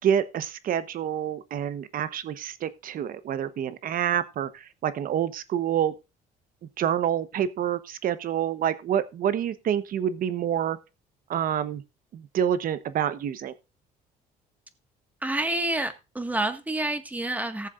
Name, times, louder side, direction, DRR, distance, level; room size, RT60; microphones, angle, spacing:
voice 1, 0.0-5.9 6.8-10.8 11.3-11.8 12.1-13.5, right 9 dB, 55° right, 1.1 m, -27 dB
voice 2, 15.2-17.7, right 1 dB, 10° right, 1.7 m, -28 dB
18.0 x 7.2 x 2.5 m
cardioid pair, 110°, 17 cm